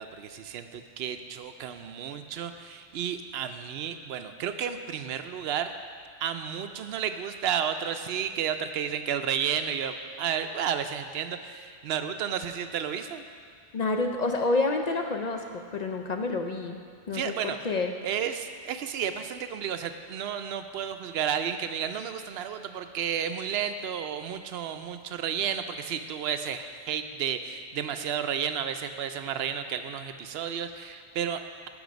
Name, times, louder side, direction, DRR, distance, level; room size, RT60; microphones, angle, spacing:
voice 1, 0.0-5.7 6.2-13.2 17.1-17.6 18.0-31.7, right 8 dB, 70° right, 8 dB, 0.8 m, -32 dB
voice 2, 13.7-16.8 17.1-17.9, left 3 dB, 50° left, 4 dB, 0.5 m, -28 dB
12.0 x 5.5 x 5.2 m, 2.1 s
omnidirectional pair, 1.1 m